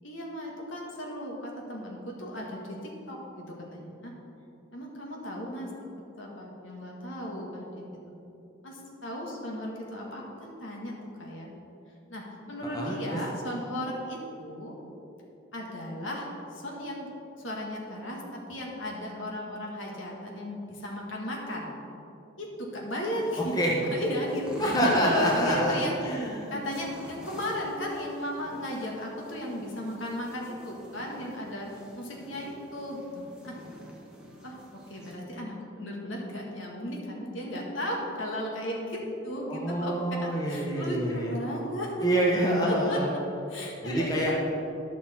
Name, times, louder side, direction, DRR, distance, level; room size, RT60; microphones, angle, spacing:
voice 1, 0.0-4.1 4.7-5.7 6.1-8.1 8.6-11.5 12.1-14.7 15.5-17.1 17.4-21.7 22.4-23.5 23.9-26.1 26.5-33.6 34.4-42.0 42.7-43.2 43.5-44.3, left 1 dB, 75° left, -2 dB, 1.7 m, -35 dB
voice 2, 12.7-13.2 23.5-23.8 24.6-25.7 26.0-26.5 39.5-41.3 42.0-43.1 43.8-44.3, right 1 dB, 20° left, -3 dB, 1.2 m, -26 dB
sound 1, 23.1-35.1, equal, 5° right, 1.1 m, -47 dB
12.5 x 6.2 x 4.3 m, 2.8 s
head